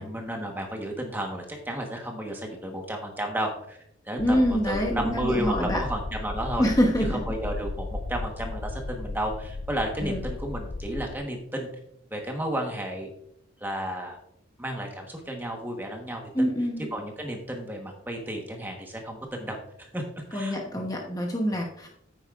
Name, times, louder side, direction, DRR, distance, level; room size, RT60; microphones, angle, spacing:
voice 1, 0.0-3.8 4.0-6.7 7.1-11.7 12.1-13.1 13.6-14.2 14.6-16.5 16.9-20.0 20.3-20.8, right 1 dB, 10° right, 2 dB, 1.2 m, -32 dB
sound 1, 4.2-11.2, left 2 dB, 65° left, 0.6 m, -35 dB
voice 2, 4.2-5.8 6.6-7.2 10.0-10.2 16.3-16.9 20.3-21.9, equal, 20° left, 1 dB, 1.0 m, -25 dB
9.8 x 8.2 x 2.5 m, 0.71 s
head